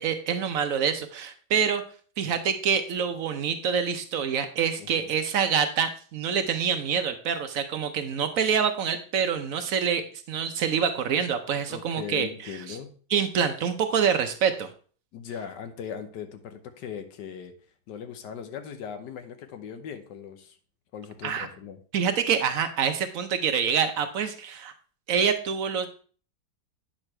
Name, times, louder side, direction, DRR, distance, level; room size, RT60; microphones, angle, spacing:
voice 1, 0.0-1.8 2.2-12.8 13.1-14.7 21.2-21.5 21.9-24.7 25.1-25.9, right 7 dB, 65° right, 8 dB, 0.9 m, -26 dB
voice 2, 11.7-12.9 15.1-17.5 17.9-20.6 20.9-21.8, left 8 dB, 90° left, 8 dB, 1.5 m, -39 dB
8.8 x 6.2 x 3.2 m, 0.42 s
omnidirectional pair, 1.8 m